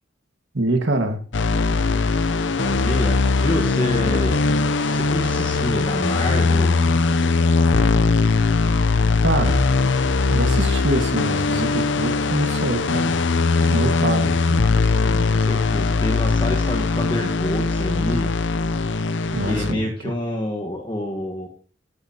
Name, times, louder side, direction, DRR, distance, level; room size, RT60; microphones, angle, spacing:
voice 1, 0.5-1.2 9.2-9.6 10.3-13.2 13.6-14.6 19.3-20.1, right 2 dB, 70° right, 6 dB, 1.7 m, -25 dB
sound 1, 1.3-19.7, left 3 dB, 65° left, 0.6 m, -20 dB
voice 2, 2.6-4.4 4.8-6.9 14.3-18.3 19.5-21.5, left 1 dB, 25° left, 0 dB, 1.3 m, -28 dB
14.5 x 11.0 x 2.9 m, 0.41 s
head